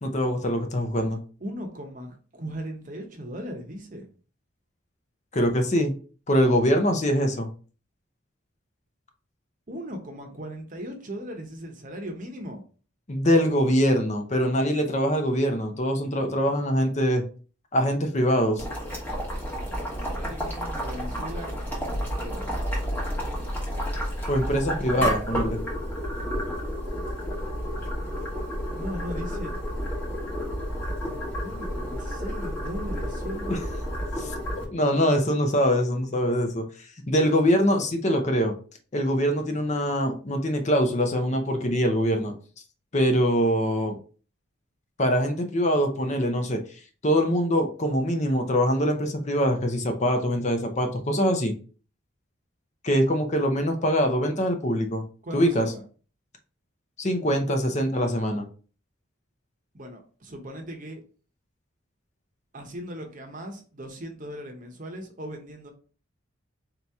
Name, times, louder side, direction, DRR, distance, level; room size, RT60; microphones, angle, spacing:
voice 1, 0.0-1.2 5.3-5.9 6.3-7.5 13.1-17.2 17.7-18.6 24.3-25.6 33.5-33.6 34.2-34.3 34.7-38.5 38.9-42.3 42.9-44.0 45.0-46.6 47.0-51.5 52.8-55.0 55.3-55.7 57.0-58.4, equal, 35° left, 0.6 m, -23 dB
voice 2, 1.4-4.1 9.7-12.6 19.9-22.7 28.8-29.6 31.4-33.9 55.2-55.8 59.7-61.0 62.5-65.7, equal, 40° right, 0.8 m, -38 dB
Boiling, 18.6-34.6, equal, 10° left, 1.1 m, -31 dB
4.0 x 2.9 x 3.5 m
head